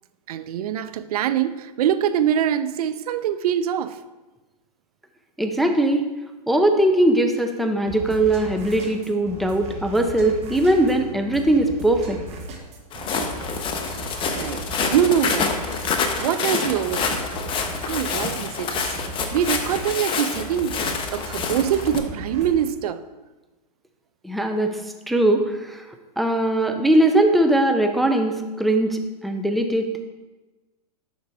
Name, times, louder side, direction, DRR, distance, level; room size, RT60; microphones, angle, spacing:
voice 1, 0.3-4.0 14.3-15.6 16.2-17.2 17.9-19.0 19.3-20.8 21.1-23.0, right 9 dB, 65° right, 0.4 m, -24 dB
voice 2, 5.4-6.1 6.5-12.2 24.2-24.8 25.1-25.8 26.2-29.9, right 1 dB, ahead, 0.4 m, -20 dB
sound 1, 7.9-22.6, right 1 dB, 30° right, 1.2 m, -37 dB
Walk footsteps, 12.9-22.0, left 5 dB, 25° left, 0.7 m, -27 dB
11.0 x 3.9 x 3.4 m
hypercardioid pair, 115°, 21 cm